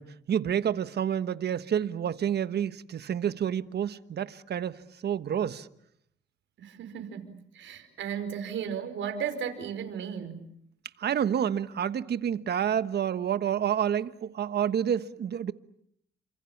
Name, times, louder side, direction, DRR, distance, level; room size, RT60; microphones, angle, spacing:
voice 1, 0.0-5.7 11.0-15.5, right 9 dB, 55° right, 1.3 m, -29 dB
voice 2, 6.6-10.4, right 7 dB, 75° right, 4.9 m, -35 dB
29.5 x 26.5 x 7.3 m
cardioid pair, 90°, 20 cm